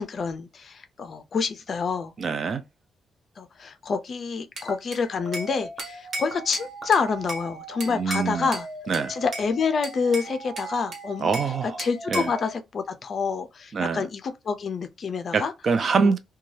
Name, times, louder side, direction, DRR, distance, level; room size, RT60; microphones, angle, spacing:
voice 1, 0.0-2.1 3.4-8.7 9.1-11.3 11.8-15.5 16.0-16.1, left 5 dB, 40° left, 0.4 m, -27 dB
voice 2, 2.2-2.6 7.9-8.5 8.9-9.1 11.2-11.8 12.1-12.3 13.7-14.1 15.3-16.2, right 5 dB, 40° right, 0.3 m, -24 dB
sound 1, 4.5-8.4, equal, 10° right, 0.8 m, -49 dB
Bell / Glass, 4.6-5.5 5.8-7.5 7.8-8.7 8.9-9.5 9.8-11.5 11.8-12.4, right 2 dB, 60° right, 1.0 m, -35 dB
sound 2, 5.2-12.5, right 3 dB, 85° right, 0.6 m, -40 dB
2.6 x 2.2 x 3.1 m
wide cardioid pair, 160°, 0 cm